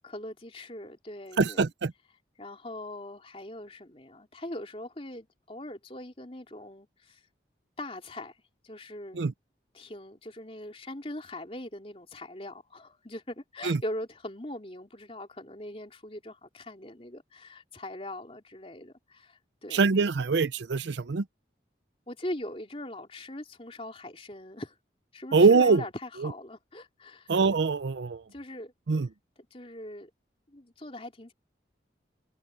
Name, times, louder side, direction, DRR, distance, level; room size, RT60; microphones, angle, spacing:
voice 1, 0.0-1.6 2.4-7.2 7.8-8.4 8.6-9.2 9.7-19.8 22.1-24.8 25.1-27.4 28.3-28.7 29.5-30.1 30.5-31.3, left 1 dB, 30° left, 3.6 m, -41 dB
voice 2, 1.4-1.9 9.1-9.3 13.6-13.8 19.7-21.2 25.3-25.8 27.3-28.2 28.9-29.1, right 4 dB, 75° right, 0.6 m, -23 dB
head